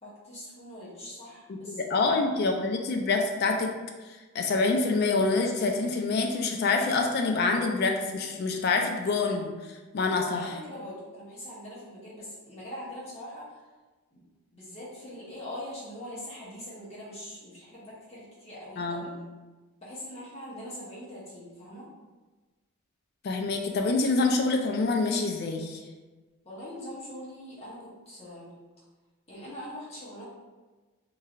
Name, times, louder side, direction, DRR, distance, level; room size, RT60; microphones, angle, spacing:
voice 1, 0.0-1.9 10.2-13.6 14.1-14.2 14.5-19.1 19.8-21.9 26.4-28.5 29.3-30.2, left 1 dB, 30° left, -8 dB, 0.9 m, -42 dB
voice 2, 1.5-3.7 4.3-10.5 18.8-19.1 23.2-25.8, left 3 dB, 45° left, 3 dB, 0.3 m, -26 dB
3.1 x 2.7 x 2.4 m, 1.3 s
head